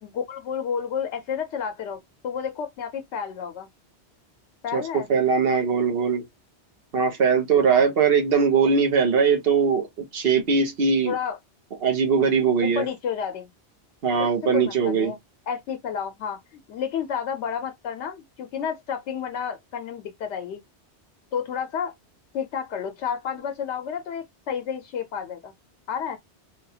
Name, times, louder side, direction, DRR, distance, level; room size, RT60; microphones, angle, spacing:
voice 1, 0.0-3.7 4.6-5.1 7.7-7.8 11.1-11.4 12.6-13.5 14.2-14.3 14.5-15.2 15.5-20.6 21.3-21.9 22.3-25.5 25.9-26.2, left 7 dB, 90° left, 0.9 m, -31 dB
voice 2, 4.7-6.2 6.9-11.1 11.8-12.9 14.0-15.1, right 6 dB, 60° right, 1.0 m, -21 dB
3.4 x 2.3 x 2.7 m
omnidirectional pair, 1.1 m